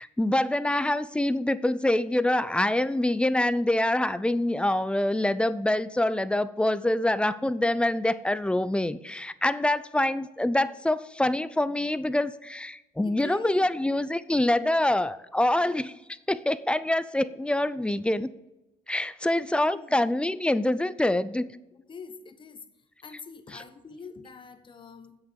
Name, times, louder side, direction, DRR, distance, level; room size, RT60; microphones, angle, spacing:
voice 1, 0.0-15.9 16.3-18.3 18.9-21.5 23.5-23.6, left 1 dB, 5° left, 0.4 m, -25 dB
voice 2, 13.0-13.7 19.4-20.0 21.9-22.6 23.0-25.2, left 5 dB, 30° left, 1.0 m, -44 dB
8.1 x 6.8 x 6.8 m
cardioid pair, 110°, 17 cm